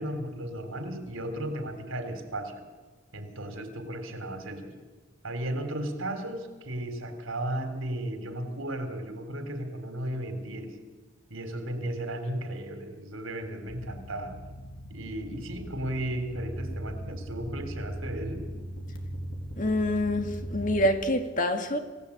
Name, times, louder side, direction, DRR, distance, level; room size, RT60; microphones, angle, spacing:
voice 1, 0.0-2.6 3.1-4.8 5.2-10.8 11.3-14.4 14.9-18.5, right 1 dB, 75° right, 7 dB, 3.9 m, -35 dB
sound 1, 13.7-20.9, equal, 65° left, 4.2 m, -39 dB
voice 2, 19.6-21.8, left 1 dB, 40° left, 6 dB, 2.2 m, -26 dB
28.0 x 17.5 x 8.8 m, 1.3 s
head